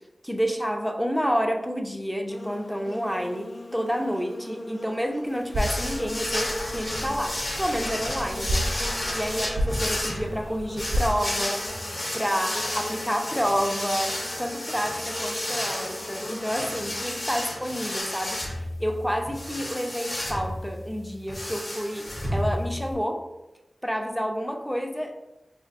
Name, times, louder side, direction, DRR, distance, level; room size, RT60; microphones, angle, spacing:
voice 1, 0.2-8.7 9.1-11.7 12.1-23.3 23.8-25.2, equal, ahead, 3 dB, 0.5 m, -29 dB
Buzz, 2.3-18.0, left 1 dB, 70° left, 0.5 m, -40 dB
sound 1, 5.5-22.9, left 1 dB, 55° left, 0.9 m, -32 dB
sound 2, 5.5-11.1, equal, 90° right, 0.4 m, -32 dB
4.3 x 2.6 x 2.4 m, 0.98 s
cardioid pair, 45°, 0 cm